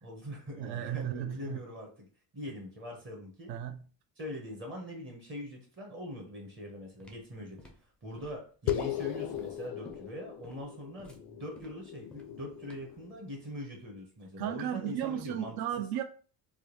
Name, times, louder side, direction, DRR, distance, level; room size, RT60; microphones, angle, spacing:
voice 1, 0.0-2.1 2.3-3.5 4.2-7.7 8.0-15.6, left 1 dB, 30° right, 0.9 m, -42 dB
voice 2, 0.6-1.6 3.5-3.8 14.4-16.0, right 10 dB, 70° right, 0.5 m, -34 dB
sound 1, 6.5-13.0, left 1 dB, 5° left, 0.4 m, -56 dB
sound 2, 8.7-13.5, left 12 dB, 85° left, 0.5 m, -38 dB
3.5 x 2.3 x 3.1 m
cardioid pair, 150°, 39 cm